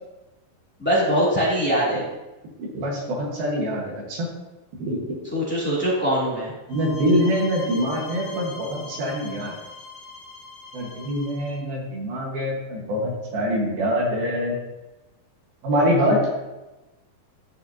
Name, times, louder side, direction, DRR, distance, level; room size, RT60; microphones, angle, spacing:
voice 1, 0.8-2.0 5.3-6.5, equal, 5° left, -8 dB, 2.0 m, -22 dB
voice 2, 2.6-4.3 4.8-5.0 6.7-9.5 10.7-14.6 15.6-16.3, equal, 70° right, -3 dB, 3.4 m, -24 dB
sound 1, 6.7-11.6, left 4 dB, 65° left, 3.3 m, -41 dB
13.5 x 5.6 x 2.9 m, 1.0 s
omnidirectional pair, 4.5 m